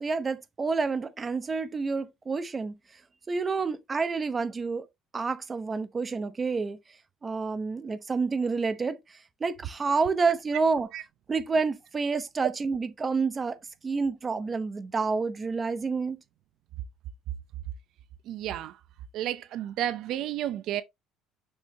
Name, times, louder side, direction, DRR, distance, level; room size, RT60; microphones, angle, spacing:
voice 1, 0.0-2.7 3.3-4.9 5.1-6.8 7.2-9.0 9.4-10.9 11.3-13.6 13.8-16.2, right 4 dB, 20° right, 0.7 m, -28 dB
voice 2, 18.3-18.7 19.1-20.8, right 12 dB, 55° right, 0.5 m, -31 dB
6.3 x 6.3 x 2.7 m
cardioid pair, 155°, 0 cm